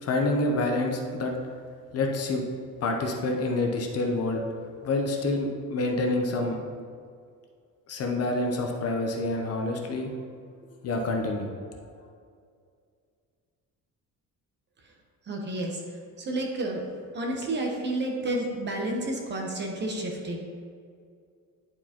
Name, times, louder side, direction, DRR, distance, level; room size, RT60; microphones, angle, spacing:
voice 1, 0.0-1.3 1.9-2.4 2.8-4.4 4.8-6.6 7.9-10.3 10.8-11.5, left 2 dB, 45° left, 2 dB, 0.7 m, -27 dB
voice 2, 15.3-15.8 16.2-16.8 17.1-20.4, right 1 dB, 30° right, 0 dB, 0.9 m, -30 dB
10.5 x 4.6 x 2.9 m, 2.2 s
cardioid pair, 175°, 35 cm